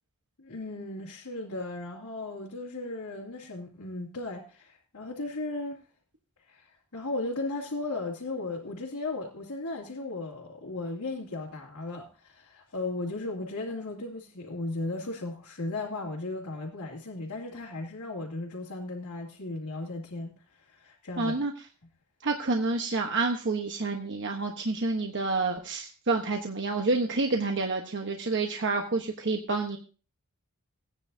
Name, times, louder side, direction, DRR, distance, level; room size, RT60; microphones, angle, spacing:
voice 1, 0.4-5.8 6.5-6.7 6.9-20.3 20.6-21.4, left 2 dB, 90° left, 2.6 m, -36 dB
voice 2, 21.2-21.5 22.2-29.8, right 3 dB, 55° right, 1.1 m, -28 dB
18.0 x 9.7 x 2.7 m
head